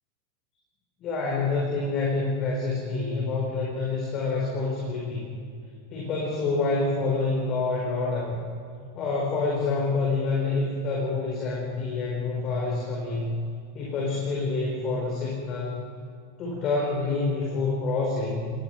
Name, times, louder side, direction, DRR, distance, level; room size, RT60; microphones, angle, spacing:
voice 1, 1.0-5.3 5.9-8.4 8.9-13.3 13.7-15.8 16.4-18.5, left 3 dB, 35° left, -2 dB, 4.7 m, -27 dB
29.0 x 19.5 x 4.7 m, 2.4 s
figure-of-eight pair, 90°, 0 cm